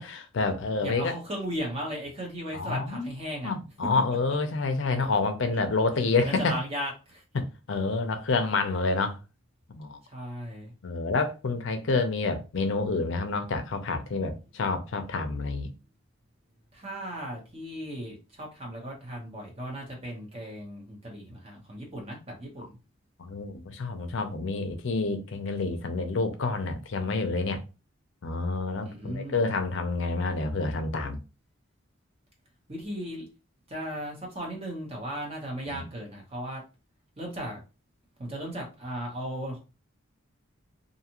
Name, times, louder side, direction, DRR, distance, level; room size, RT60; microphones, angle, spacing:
voice 1, 0.0-1.1 2.5-3.1 3.4-6.5 7.3-9.2 9.8-10.0 10.8-15.7 23.2-27.6 28.2-31.2 35.7-35.8, left 3 dB, 65° left, 0.5 m, -28 dB
voice 2, 0.8-3.5 5.5-5.6 6.2-7.2 10.0-10.7 16.7-22.8 28.8-29.4 32.7-33.2 33.7-36.6 37.2-37.6 38.2-39.6, equal, 30° right, 0.9 m, -36 dB
2.6 x 2.4 x 2.9 m
head